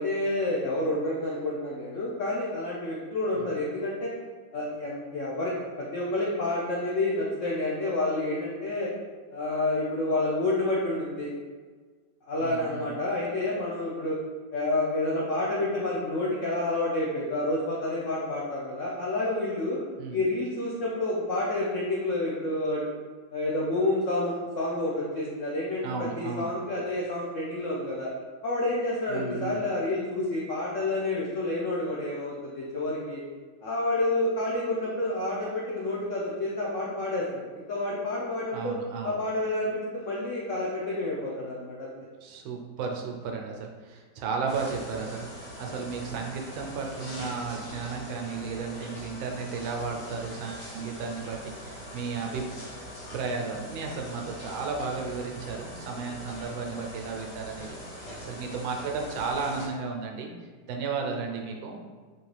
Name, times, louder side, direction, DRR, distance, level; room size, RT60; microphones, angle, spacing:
voice 1, 0.0-4.1 4.5-8.9 9.3-11.3 12.3-14.2 14.5-19.8 20.1-22.8 23.3-28.1 28.4-33.2 33.6-38.8 39.0-41.9, left 2 dB, 85° left, -5 dB, 0.6 m, -29 dB
voice 2, 12.4-12.9 20.0-20.2 25.8-26.5 29.1-29.6 38.5-39.2 42.2-52.5 53.1-60.3 60.7-61.8, right 4 dB, 85° right, 1 dB, 1.4 m, -34 dB
sound 1, 44.5-59.7, equal, 40° left, 1.4 m, -42 dB
4.4 x 3.0 x 3.2 m, 1.5 s
omnidirectional pair, 2.1 m